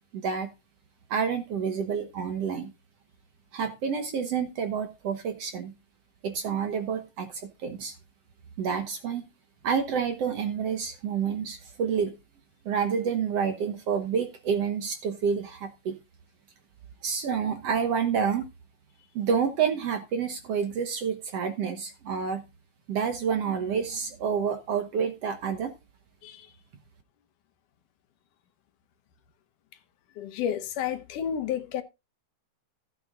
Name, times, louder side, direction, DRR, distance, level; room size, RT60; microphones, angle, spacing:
voice 1, 0.1-0.5 1.1-2.7 3.5-5.7 6.2-8.0 8.6-9.2 9.6-12.2 12.7-16.0 17.0-18.5 19.2-22.4 22.9-25.7, right 6 dB, 60° right, 1.8 m, -28 dB
voice 2, 30.2-31.8, left 9 dB, 75° left, 2.4 m, -31 dB
15.5 x 9.0 x 2.4 m
omnidirectional pair, 3.8 m